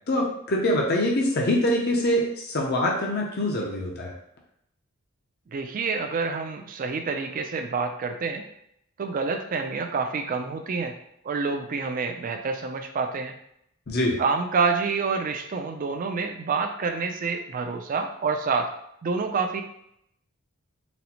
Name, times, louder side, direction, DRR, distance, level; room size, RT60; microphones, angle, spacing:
voice 1, 0.1-4.1 13.9-14.2, left 1 dB, 50° left, -1 dB, 0.5 m, -24 dB
voice 2, 5.5-8.4 9.0-11.0 11.2-13.3 14.2-18.7 19.0-19.6, right 4 dB, 40° right, 5 dB, 0.3 m, -27 dB
4.0 x 2.0 x 2.8 m, 0.74 s
head